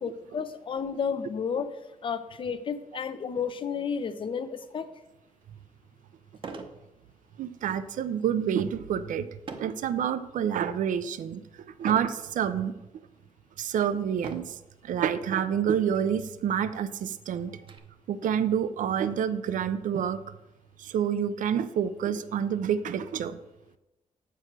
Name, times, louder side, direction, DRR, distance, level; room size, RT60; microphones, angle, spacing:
voice 1, 0.0-1.7 2.0-4.9, left 6 dB, 40° left, 11 dB, 0.5 m, -32 dB
puzzle box lid, 5.4-5.5 6.4-6.8 7.2-7.6 9.5-9.8 10.4-10.9 11.9-12.2 13.0-13.1 14.2-14.6 15.7-15.8 16.1-16.2 16.7-17.8, right 4 dB, 40° right, 0.7 m, -41 dB
voice 2, 7.4-9.3 9.6-11.4 11.8-12.7 13.6-14.6 14.8-17.5 18.1-20.2 20.8-23.4, right 8 dB, 75° right, 13 dB, 0.5 m, -28 dB
7.7 x 4.7 x 5.9 m, 0.96 s
wide cardioid pair, 160°, 14 cm